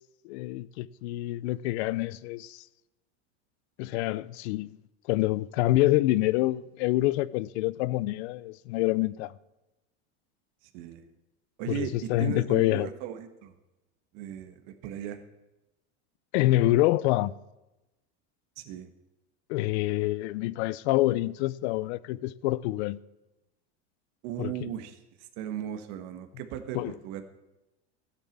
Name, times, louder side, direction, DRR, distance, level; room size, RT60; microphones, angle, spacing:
voice 1, 0.2-2.6 3.8-4.7 5.1-9.3 11.7-12.9 16.3-17.3 19.5-23.0 24.4-24.5 26.7-26.9, left 17 dB, 70° left, 0.6 m, -26 dB
voice 2, 10.7-11.1 11.6-13.5 14.1-15.2 18.6-18.9 24.2-25.0 25.4-27.2, right 11 dB, 60° right, 1.5 m, -37 dB
13.5 x 8.5 x 7.3 m
supercardioid pair, 140°, 35 cm